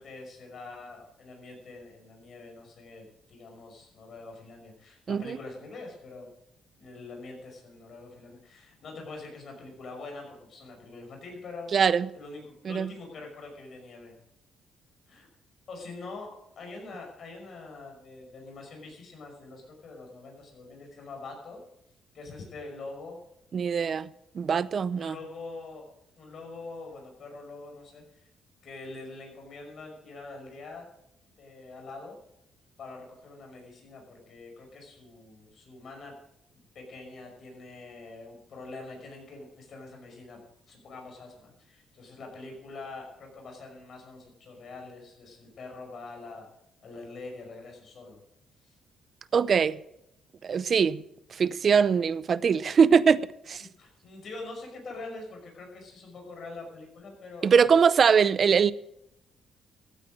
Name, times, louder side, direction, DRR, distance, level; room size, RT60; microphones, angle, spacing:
voice 1, 0.0-6.3 6.8-11.7 12.1-14.2 15.1-15.3 15.7-21.6 22.1-23.2 24.9-25.9 26.2-28.3 28.6-30.9 31.4-32.2 32.8-36.1 36.5-40.4 40.7-46.5 46.8-48.2 48.6-48.8 53.6-57.7, left 3 dB, 55° left, 5.6 m, -44 dB
voice 2, 11.7-12.1 12.7-12.9 23.5-24.1 24.3-25.1 49.3-49.8 50.4-51.0 51.3-53.2 53.5-53.6 57.4-58.7, right 6 dB, 50° right, 0.6 m, -22 dB
14.5 x 9.1 x 6.4 m
cardioid pair, 90°, 0 cm